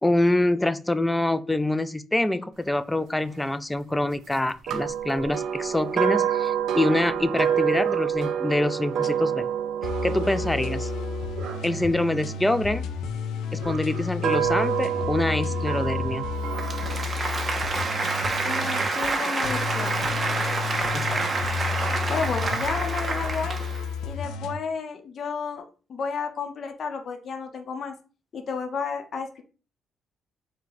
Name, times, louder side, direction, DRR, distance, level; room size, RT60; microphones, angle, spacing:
voice 1, 0.0-9.5 10.0-10.9 11.6-12.9 13.5-16.3 20.9-21.2, left 1 dB, 10° left, 13 dB, 0.3 m, -25 dB
sound 1, 4.7-12.8 13.6-17.0, right 9 dB, 75° right, 0.5 m, -28 dB
sound 2, 8.7-9.1 9.8-24.6, left 6 dB, 90° left, 0.4 m, -32 dB
Applause, 16.5-23.9, right 3 dB, 35° right, 0.7 m, -28 dB
voice 2, 18.4-20.2 21.6-21.7 22.1-23.6 24.0-27.9 28.3-29.4, left 5 dB, 55° left, 5 dB, 0.7 m, -32 dB
4.6 x 2.2 x 3.9 m, 0.36 s
cardioid pair, 90°, 0 cm